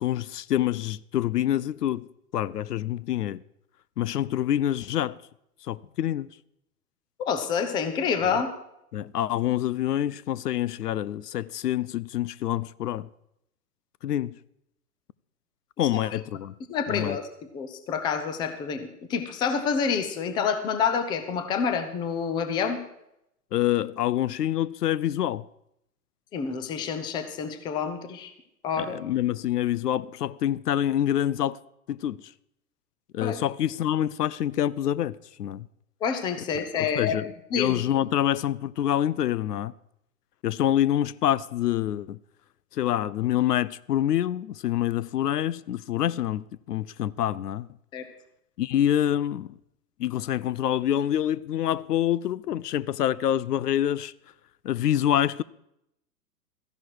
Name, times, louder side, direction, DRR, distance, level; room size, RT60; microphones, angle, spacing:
voice 1, 0.0-3.4 4.0-5.2 5.6-6.3 8.3-8.4 8.9-13.1 14.0-14.3 15.8-16.5 16.9-17.2 23.5-25.4 28.8-31.6 31.9-32.2 33.1-35.7 36.6-39.7 40.4-42.2 42.7-47.7 48.6-49.5 50.0-54.1 54.6-55.4, left 11 dB, 80° left, 0.6 m, -26 dB
voice 2, 7.3-8.5 16.7-17.3 17.5-22.8 26.3-28.3 28.6-29.0 33.2-33.4 36.0-37.2 37.5-37.7 47.9-48.0, left 6 dB, 10° left, 0.5 m, -28 dB
13.5 x 11.0 x 4.7 m
hypercardioid pair, 130°, 47 cm